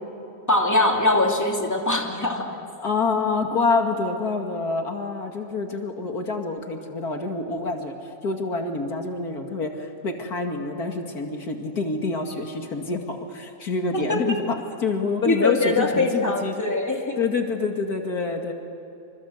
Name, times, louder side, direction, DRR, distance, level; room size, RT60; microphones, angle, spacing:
voice 1, 0.5-2.6 13.9-14.0 15.3-17.2, left 2 dB, 10° left, 0 dB, 2.9 m, -22 dB
voice 2, 2.8-16.6 17.2-18.5, left 4 dB, 80° left, 3 dB, 2.8 m, -27 dB
27.5 x 27.0 x 8.0 m, 2.9 s
omnidirectional pair, 1.6 m